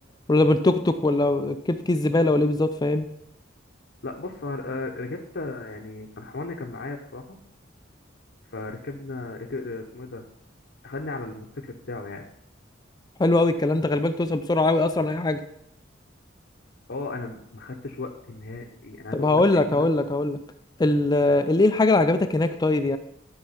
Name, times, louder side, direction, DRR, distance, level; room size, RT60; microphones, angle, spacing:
voice 1, 0.3-3.1 13.2-15.4 19.1-20.4 20.8-23.0, left 2 dB, 20° left, 10 dB, 0.4 m, -21 dB
voice 2, 4.0-7.4 8.5-10.3 10.8-12.3 16.9-19.9, left 3 dB, 60° left, 0 dB, 0.8 m, -35 dB
11.5 x 4.6 x 5.6 m, 0.76 s
head